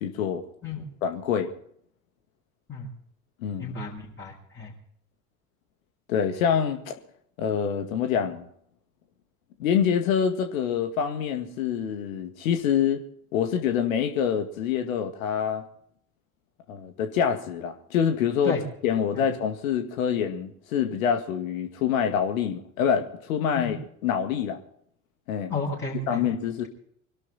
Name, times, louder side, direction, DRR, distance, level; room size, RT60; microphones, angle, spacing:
voice 1, 0.0-0.5 1.0-1.5 3.4-3.8 6.1-7.0 7.4-8.5 9.6-13.0 13.3-15.6 16.7-18.6 18.8-23.8 24.0-24.6 25.3-25.5 26.1-26.6, left 8 dB, 65° left, 6 dB, 2.2 m, -26 dB
voice 2, 3.6-4.7 18.4-18.6 23.6-23.7 25.5-26.2, left 4 dB, 25° left, -4 dB, 6.5 m, -32 dB
24.5 x 12.5 x 4.3 m, 0.66 s
figure-of-eight pair, 70°, 43 cm